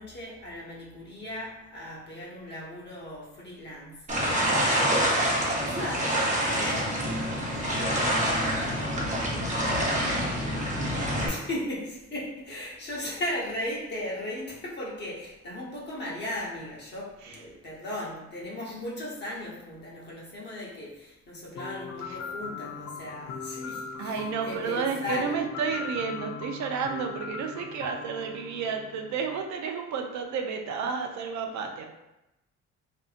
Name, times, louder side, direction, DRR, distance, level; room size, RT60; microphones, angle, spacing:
voice 1, 0.0-5.0 5.4-6.1 6.4-6.9 7.5-8.1 11.2-25.4, left 1 dB, 35° left, -5 dB, 0.9 m, -37 dB
sound 1, 4.1-11.3, equal, 25° right, 0.8 m, -26 dB
sound 2, 21.5-29.4, left 5 dB, 60° left, 0.5 m, -40 dB
voice 2, 24.0-31.9, right 6 dB, 65° right, 4 dB, 0.4 m, -31 dB
2.6 x 2.6 x 2.4 m, 0.95 s
cardioid pair, 90°, 30 cm